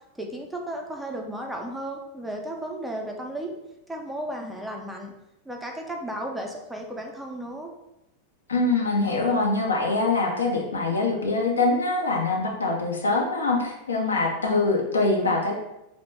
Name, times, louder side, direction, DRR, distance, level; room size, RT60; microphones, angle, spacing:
voice 1, 0.2-3.5 3.9-5.1 5.5-7.7, right 1 dB, 5° right, 1 dB, 0.4 m, -34 dB
voice 2, 8.5-15.5, left 3 dB, 70° left, 1 dB, 0.5 m, -24 dB
2.9 x 2.0 x 3.1 m, 0.89 s
figure-of-eight pair, 90°, 0 cm